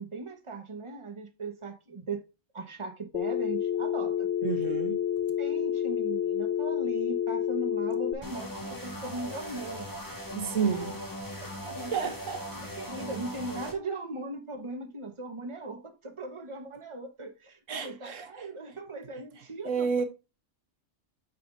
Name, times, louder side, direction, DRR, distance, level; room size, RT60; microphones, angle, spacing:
voice 1, 0.0-2.3 2.5-4.3 5.4-9.9 10.6-10.9 11.4-12.1 12.6-20.0, right 3 dB, 25° right, 1.3 m, -39 dB
Telephone, 3.1-8.1, left 9 dB, 65° left, 1.0 m, -29 dB
voice 2, 4.4-5.0 10.3-10.9 11.9-12.4 17.7-18.5 19.6-20.0, right 6 dB, 75° right, 1.4 m, -30 dB
sound 1, 8.2-13.7, left 1 dB, 15° left, 1.7 m, -39 dB
9.0 x 5.8 x 2.6 m
omnidirectional pair, 1.3 m